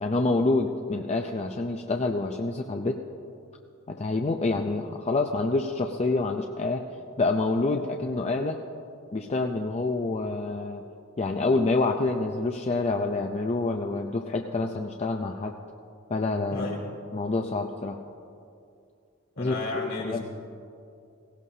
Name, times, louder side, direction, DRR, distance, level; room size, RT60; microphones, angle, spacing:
voice 1, 0.0-3.0 3.9-6.8 7.2-8.6 9.1-10.8 11.2-15.5 16.1-16.7 17.1-18.0 19.4-20.2, left 3 dB, 30° left, 3 dB, 0.5 m, -27 dB
voice 2, 16.5-16.8 19.3-20.2, left 2 dB, 70° left, -3 dB, 3.2 m, -33 dB
17.5 x 16.5 x 2.8 m, 2.5 s
head